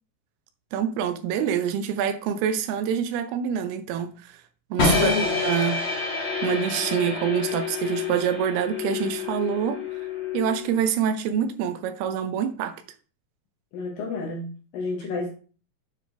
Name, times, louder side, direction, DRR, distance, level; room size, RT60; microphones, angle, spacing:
voice 1, 0.7-4.4 4.7-5.2 5.4-5.8 6.4-9.8 10.3-12.8, right 8 dB, 85° right, 2.8 m, -26 dB
sound 1, 4.8-10.8, left 4 dB, 35° left, 2.4 m, -27 dB
voice 2, 4.9-5.4 13.7-15.3, left 4 dB, 70° left, 2.7 m, -29 dB
9.1 x 5.1 x 3.4 m
omnidirectional pair, 4.4 m